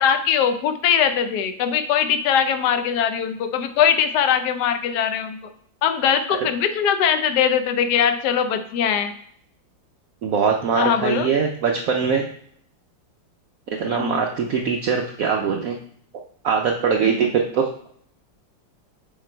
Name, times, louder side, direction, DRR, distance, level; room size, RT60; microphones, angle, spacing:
voice 1, 0.0-5.4 5.8-9.1 10.7-11.3 13.9-14.2, left 8 dB, 70° left, 8 dB, 1.1 m, -21 dB
voice 2, 10.2-12.2 13.8-15.8 16.4-17.7, right 6 dB, 70° right, 2 dB, 0.8 m, -22 dB
6.9 x 3.9 x 4.4 m, 0.64 s
omnidirectional pair, 2.1 m